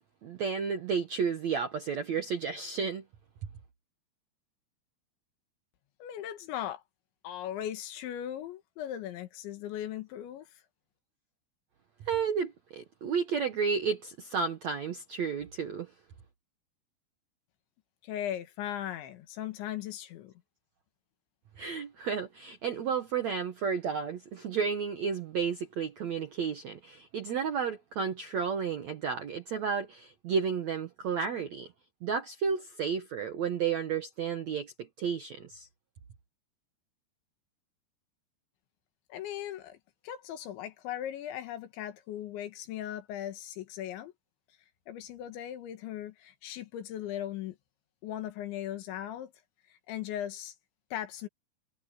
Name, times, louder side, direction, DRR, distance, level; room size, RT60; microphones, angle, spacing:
voice 1, 0.2-3.0 12.0-15.9 21.6-31.7 32.0-35.7, right 6 dB, 70° right, 1.7 m, -32 dB
voice 2, 6.0-6.8 7.2-10.5 18.0-20.3 39.1-39.8 40.0-44.1 44.9-47.6 48.0-49.3 49.7-50.6 50.9-51.3, left 11 dB, 85° left, 4.1 m, -38 dB
omnidirectional pair, 5.1 m